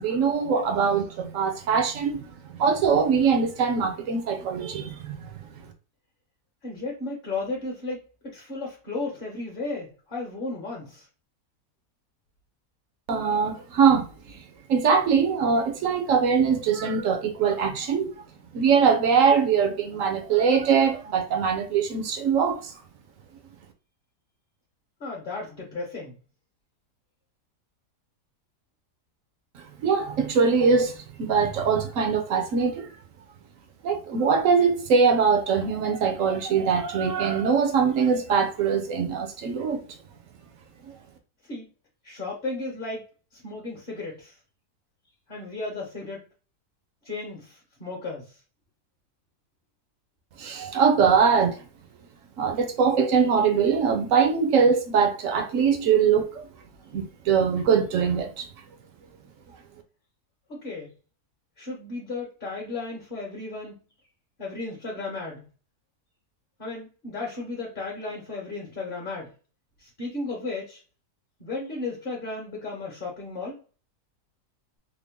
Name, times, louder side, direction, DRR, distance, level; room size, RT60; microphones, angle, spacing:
voice 1, 0.0-2.2 2.5-5.2 13.1-14.1 14.7-18.1 18.5-22.7 29.8-32.9 33.8-39.8 50.4-51.6 52.4-56.5 56.9-58.5, right 6 dB, 60° right, 1.0 m, -22 dB
voice 2, 6.6-11.1 25.0-26.2 41.4-41.7 42.0-43.1 43.3-44.4 45.3-46.2 47.0-48.4 60.5-60.9 61.6-63.9 64.4-65.4 66.6-69.3 69.8-70.8 71.4-73.6, left 3 dB, 40° left, 1.1 m, -34 dB
3.7 x 2.1 x 3.6 m
omnidirectional pair, 1.7 m